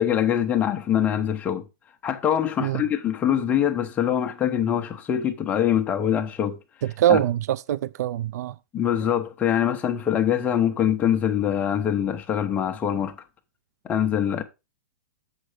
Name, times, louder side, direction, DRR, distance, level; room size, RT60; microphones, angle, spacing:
voice 1, 0.0-1.6 2.0-6.6 7.1-7.2 8.7-13.2 13.8-14.4, left 9 dB, 15° left, 0.8 m, -23 dB
voice 2, 6.8-8.5, right 12 dB, 65° right, 0.4 m, -23 dB
7.8 x 5.6 x 4.9 m
supercardioid pair, 160°, 9 cm